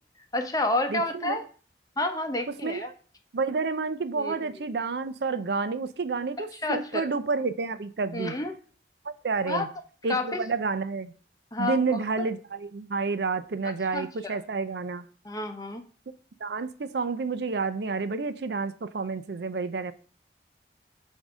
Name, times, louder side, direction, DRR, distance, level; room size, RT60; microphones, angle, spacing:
voice 1, 0.3-1.4 2.0-2.9 4.2-4.4 6.6-7.1 8.1-8.5 9.5-9.7 10.1-10.4 11.5-11.8 12.2-12.3 13.9-14.4 15.2-15.8, left 2 dB, 20° left, 6 dB, 0.7 m, -29 dB
voice 2, 0.9-1.4 2.5-2.9 3.3-8.4 9.0-9.7 10.0-11.1 11.6-15.1 16.4-19.9, right 4 dB, 70° right, 11 dB, 0.5 m, -30 dB
8.2 x 2.7 x 6.1 m, 0.40 s
head